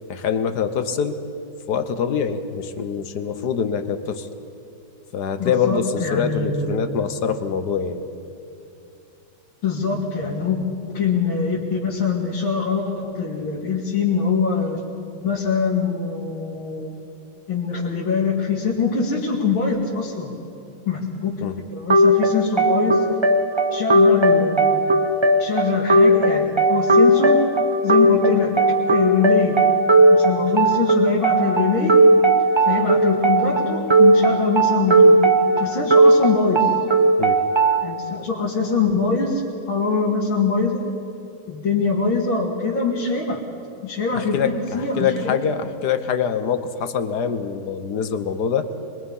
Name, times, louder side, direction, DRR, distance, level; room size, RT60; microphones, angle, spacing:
voice 1, 0.1-1.2 1.7-4.3 5.1-8.0 21.4-21.5 37.2-37.4 44.1-48.7, left 7 dB, 60° left, 9 dB, 1.5 m, -24 dB
voice 2, 5.4-6.8 9.6-10.6 10.9-14.8 15.2-16.9 17.5-20.3 20.9-23.0 23.7-24.8 25.4-27.4 27.8-28.6 28.9-29.8 30.1-32.0 32.6-35.3 35.6-36.7 37.8-39.4 39.7-40.9 41.5-43.4 43.8-45.3, left 4 dB, 85° left, -6 dB, 2.9 m, -23 dB
sound 1, 21.9-37.9, right 1 dB, 20° right, 0.9 m, -17 dB
26.5 x 21.5 x 5.6 m, 2.6 s
omnidirectional pair, 2.2 m